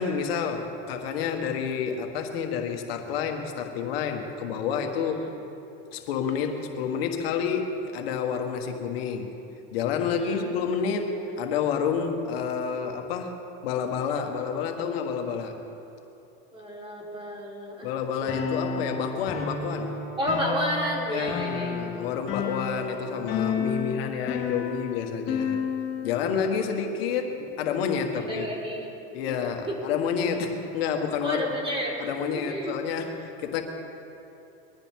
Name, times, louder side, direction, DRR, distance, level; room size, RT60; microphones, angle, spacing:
voice 1, 0.0-5.2 5.9-9.3 9.7-13.3 13.6-15.6 17.8-20.0 21.1-25.6 26.0-28.5 29.1-31.5 32.0-33.6, left 6 dB, 85° left, 4 dB, 1.6 m, -29 dB
voice 2, 10.1-10.5 16.5-17.9 18.2-18.4 20.2-21.8 28.2-29.0 29.3-29.4 29.7-30.0 31.2-31.9 32.3-32.8, equal, 20° right, -3 dB, 4.0 m, -31 dB
sound 1, 18.3-26.1, left 6 dB, 45° left, 3.8 m, -31 dB
22.0 x 13.5 x 3.7 m, 2.8 s
supercardioid pair, 125°, 29 cm